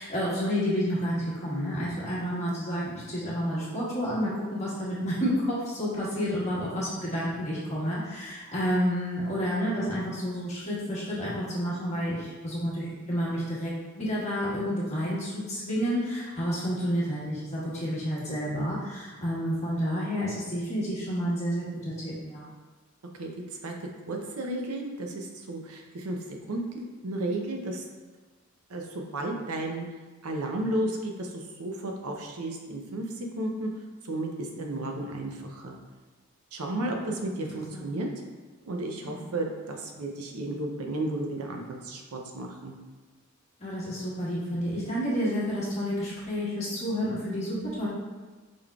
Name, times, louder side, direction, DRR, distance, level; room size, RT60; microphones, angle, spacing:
voice 1, 0.0-22.5 34.6-34.8 36.7-37.1 37.7-37.9 39.0-39.3 43.6-47.9, equal, 30° left, -8 dB, 1.3 m, -30 dB
voice 2, 23.2-23.7 24.1-26.2 26.5-27.8 28.7-29.8 30.2-33.7 34.0-35.8 36.5-38.1 38.7-42.7, right 1 dB, 85° right, 2 dB, 0.6 m, -33 dB
5.0 x 3.7 x 2.3 m, 1.3 s
head